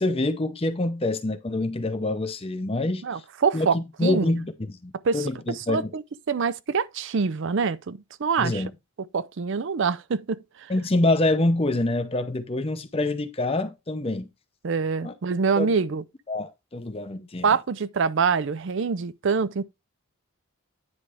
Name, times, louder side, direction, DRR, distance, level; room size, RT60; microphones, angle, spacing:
voice 1, 0.0-3.0 3.5-5.9 8.4-8.7 10.7-14.3 15.0-15.1 15.6-15.7 16.3-17.6, left 2 dB, 25° left, 0.6 m, -26 dB
voice 2, 3.0-4.3 5.0-6.0 6.3-8.6 9.1-10.7 14.6-16.0 17.4-19.6, right 5 dB, 55° right, 0.5 m, -25 dB
9.7 x 3.3 x 4.9 m
head